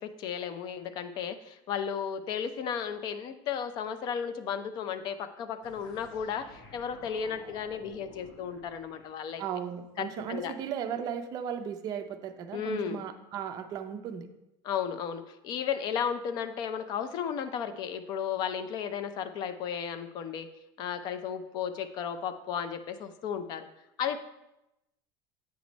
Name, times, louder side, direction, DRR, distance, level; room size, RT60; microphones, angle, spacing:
voice 1, 0.0-9.4 10.0-10.5 12.5-13.0 14.6-20.5 20.8-23.7 24.0-24.2, left 7 dB, 40° left, 10 dB, 0.5 m, -34 dB
sound 1, 5.6-9.6, left 2 dB, 80° left, 1.3 m, -52 dB
voice 2, 9.4-14.3, right 8 dB, 35° right, 7 dB, 0.5 m, -36 dB
8.1 x 3.1 x 5.1 m, 0.91 s
cardioid pair, 165°, 11 cm